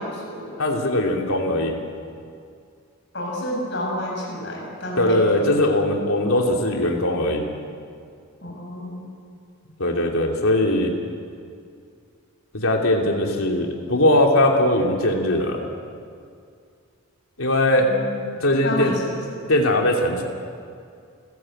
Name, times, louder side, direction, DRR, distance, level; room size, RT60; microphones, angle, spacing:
voice 1, 0.0-0.6 3.1-5.7 8.4-9.1 17.8-18.4 18.6-19.4, left 1 dB, 50° left, -3 dB, 6.9 m, -30 dB
voice 2, 0.6-1.7 5.0-7.4 9.8-10.9 12.5-15.6 17.4-17.9 18.4-18.9 19.5-20.2, left 1 dB, 75° left, 1 dB, 2.9 m, -20 dB
29.0 x 16.0 x 7.8 m, 2.3 s
head